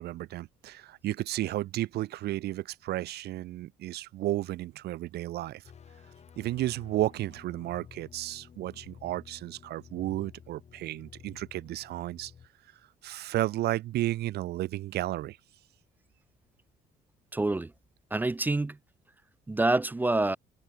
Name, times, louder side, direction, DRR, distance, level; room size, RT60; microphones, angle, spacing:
voice 1, 0.0-5.6 6.4-12.3 13.0-15.4, right 15 dB, 70° right, 1.7 m, -33 dB
sound 1, 5.6-12.5, left 7 dB, 40° left, 3.0 m, -52 dB
voice 2, 17.3-17.7 18.1-18.8 19.5-20.4, right 2 dB, 10° right, 0.4 m, -26 dB
cardioid pair, 110°, 17 cm